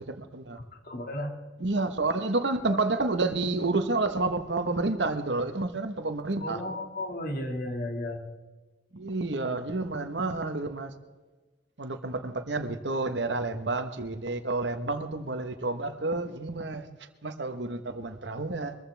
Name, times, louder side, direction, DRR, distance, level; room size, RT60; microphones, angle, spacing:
voice 1, 0.1-0.6 1.6-6.6 8.9-10.9 11.8-16.8 17.2-18.7, right 3 dB, 80° right, 1.4 m, -29 dB
voice 2, 0.8-1.3 6.4-8.2, left 1 dB, 55° left, 2.4 m, -33 dB
23.0 x 15.0 x 3.5 m
head